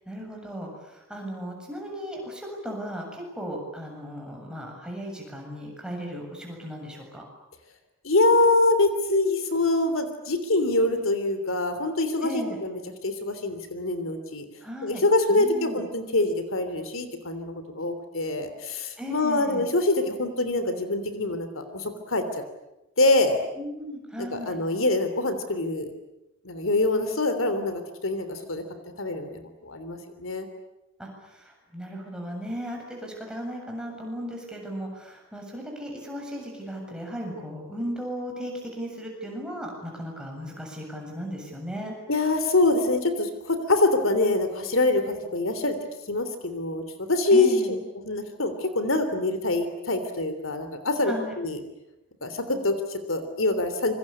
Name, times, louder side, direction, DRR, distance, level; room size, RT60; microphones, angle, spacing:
voice 1, 0.1-7.2 12.2-12.6 14.6-15.9 19.0-19.7 23.6-24.6 31.0-41.9 47.3-47.7 51.0-51.3, equal, 5° right, 0 dB, 7.5 m, -36 dB
voice 2, 8.0-14.5 14.8-22.2 23.0-23.4 24.2-25.9 26.4-28.6 29.0-30.5 42.1-45.8 46.1-47.6 48.0-51.6 52.2-53.9, left 2 dB, 70° left, 9 dB, 3.2 m, -25 dB
27.0 x 24.5 x 8.6 m, 0.95 s
head